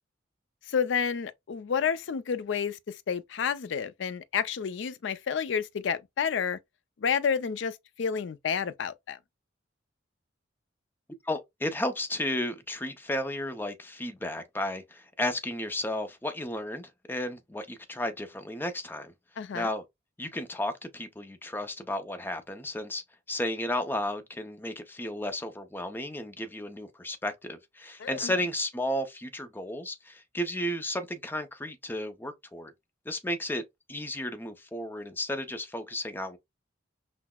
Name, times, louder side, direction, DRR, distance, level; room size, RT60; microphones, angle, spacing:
voice 1, 0.7-6.6 7.0-9.2 19.4-19.7 28.0-28.3, left 7 dB, 65° left, 0.4 m, -30 dB
voice 2, 11.2-19.1 19.5-19.8 20.2-23.0 23.3-32.7 33.1-33.6 33.9-36.4, left 1 dB, 10° left, 0.5 m, -33 dB
5.8 x 2.0 x 2.2 m
head